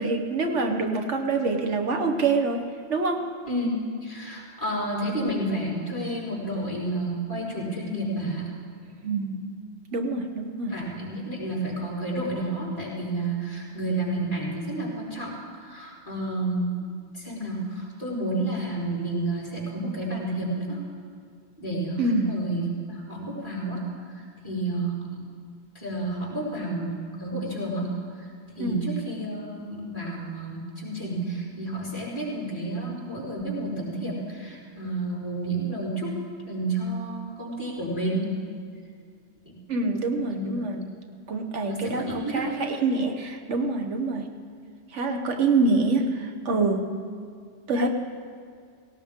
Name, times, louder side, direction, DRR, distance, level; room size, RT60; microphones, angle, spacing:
voice 1, 0.0-2.6 2.9-3.3 9.0-9.5 9.9-10.7 22.0-22.4 28.6-28.8 39.7-40.8 41.3-44.3 44.9-46.9 47.7-47.9, right 3 dB, 90° right, 4 dB, 1.5 m, -26 dB
voice 2, 3.5-8.5 10.7-16.7 17.1-20.8 21.6-23.8 24.1-25.2 25.7-27.9 28.2-28.3 28.6-36.1 36.4-38.3 39.4-39.5 40.3-40.8 41.6-42.7, right 2 dB, 30° left, -8 dB, 5.1 m, -30 dB
18.5 x 18.0 x 3.7 m, 2.1 s
omnidirectional pair, 1.2 m